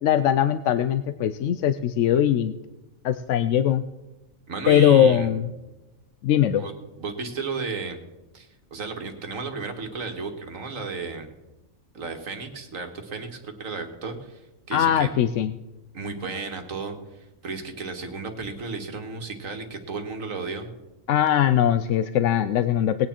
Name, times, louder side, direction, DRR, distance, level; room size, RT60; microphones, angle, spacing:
voice 1, 0.0-2.5 3.0-3.8 4.7-5.5 6.2-6.6 14.7-15.5 21.1-23.1, left 10 dB, 70° left, 12 dB, 0.9 m, -21 dB
voice 2, 4.5-5.3 6.5-8.0 8.3-11.3 11.9-15.1 15.9-20.7, right 4 dB, 80° right, 5 dB, 2.0 m, -34 dB
19.5 x 9.5 x 4.4 m, 1.0 s
omnidirectional pair, 1.4 m